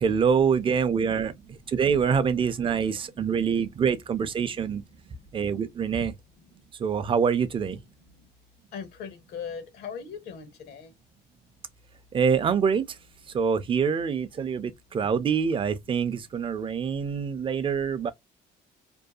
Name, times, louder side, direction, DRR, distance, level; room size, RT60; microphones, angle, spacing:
voice 1, 0.0-1.3 1.7-4.8 5.3-6.1 6.8-7.8 12.1-12.9 13.3-18.1, right 6 dB, 30° right, 0.4 m, -25 dB
voice 2, 8.7-10.9, left 6 dB, 75° left, 0.8 m, -39 dB
2.6 x 2.3 x 2.2 m
cardioid pair, 110°, 17 cm